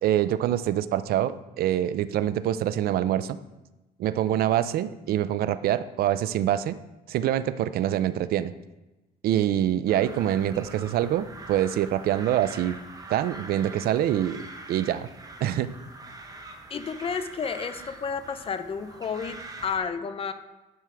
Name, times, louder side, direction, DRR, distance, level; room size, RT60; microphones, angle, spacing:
voice 1, 0.0-3.4 4.0-6.8 7.1-8.5 9.2-12.8 13.1-14.4 14.7-15.1 15.4-15.7, right 11 dB, 65° right, 14 dB, 0.5 m, -25 dB
sound 1, 9.9-19.8, right 2 dB, 20° right, 1.0 m, -44 dB
voice 2, 16.7-20.3, left 6 dB, 35° left, 10 dB, 0.7 m, -31 dB
10.5 x 6.2 x 3.4 m, 1.0 s
cardioid pair, 110°, 17 cm